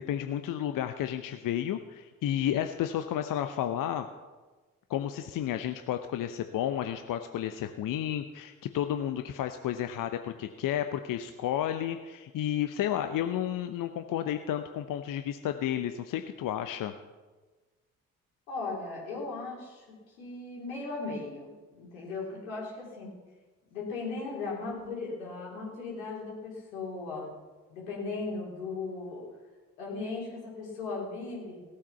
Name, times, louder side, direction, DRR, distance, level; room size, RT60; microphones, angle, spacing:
voice 1, 0.0-4.1 4.9-16.9, left 11 dB, 50° left, 8 dB, 0.9 m, -32 dB
voice 2, 18.5-23.1 23.7-27.3 27.7-29.2 29.8-31.6, left 3 dB, 80° left, -4 dB, 3.8 m, -37 dB
18.0 x 8.6 x 5.8 m, 1.3 s
figure-of-eight pair, 45°, 41 cm